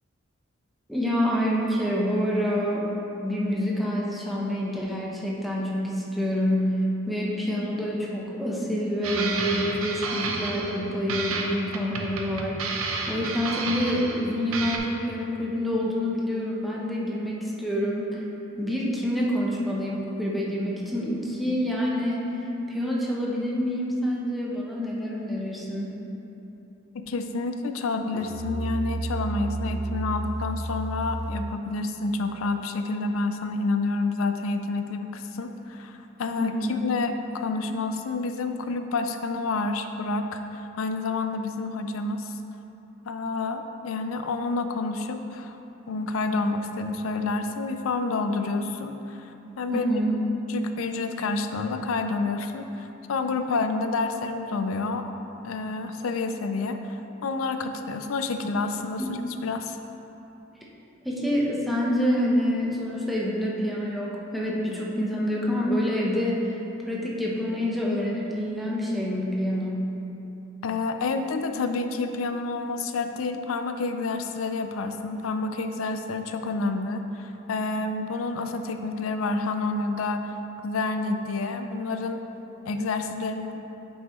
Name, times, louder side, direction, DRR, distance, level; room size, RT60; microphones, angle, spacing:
voice 1, 0.9-2.9 3.2-18.2 18.6-25.9 36.4-36.8 49.7-50.1 59.3-59.4 61.0-66.5 66.9-69.9, equal, ahead, -5 dB, 0.8 m, -27 dB
sound 1, 9.0-10.8 11.1-14.3 14.5-14.8, right 3 dB, 85° right, 0.7 m, -31 dB
voice 2, 26.9-42.3 43.0-45.6 45.9-49.8 50.5-55.1 55.4-59.0 59.4-59.8 70.6-80.3 80.6-82.2 82.7-83.6, left 3 dB, 90° left, 7 dB, 0.4 m, -29 dB
Musical instrument, 28.1-31.7, right 2 dB, 35° right, 0.4 m, -31 dB
7.9 x 5.5 x 3.1 m, 3.0 s
head